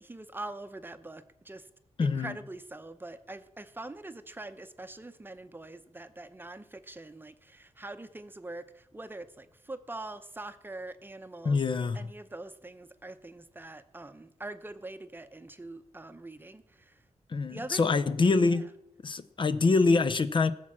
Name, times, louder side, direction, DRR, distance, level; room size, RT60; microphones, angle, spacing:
voice 1, 0.0-1.7 2.0-11.6 11.9-17.0 17.5-18.2 18.4-18.6, right 2 dB, 15° right, 0.8 m, -43 dB
voice 2, 2.0-2.3 11.4-12.0 17.3-18.7 19.0-20.5, left 4 dB, 40° left, 0.6 m, -25 dB
18.5 x 7.4 x 6.1 m
wide cardioid pair, 115°, 12 cm